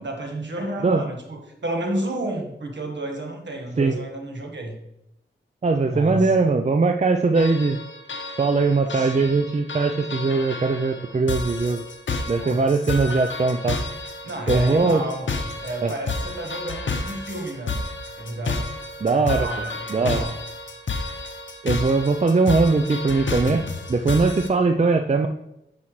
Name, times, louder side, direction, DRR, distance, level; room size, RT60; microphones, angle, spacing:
voice 1, 0.0-4.7 5.9-6.3 8.9-9.4 12.4-12.7 14.2-17.8 18.2-18.7 19.0-20.4, right 1 dB, 65° right, 2 dB, 1.5 m, -31 dB
voice 2, 5.6-7.8 8.4-11.8 12.3-13.8 14.5-15.0 15.8-15.9 19.0-19.5 19.9-20.3 21.6-25.3, right 3 dB, 35° right, 5 dB, 0.5 m, -20 dB
sound 1, 7.3-24.5, left 3 dB, 75° left, 0.8 m, -31 dB
9.5 x 5.7 x 3.2 m, 0.86 s
wide cardioid pair, 65°, 20 cm